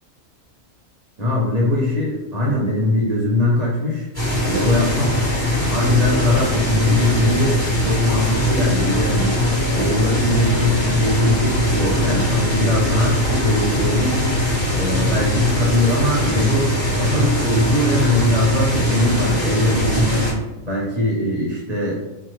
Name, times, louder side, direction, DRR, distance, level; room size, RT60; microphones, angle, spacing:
voice 1, 1.2-4.1 4.5-5.2 5.7-7.6 7.8-9.4 9.7-14.3 14.7-20.3 20.6-22.0, left 2 dB, 40° right, -5 dB, 0.6 m, -21 dB
sound 1, 4.1-20.3, left 1 dB, 10° left, 1.4 m, -20 dB
2.7 x 2.3 x 3.0 m, 0.99 s
omnidirectional pair, 1.4 m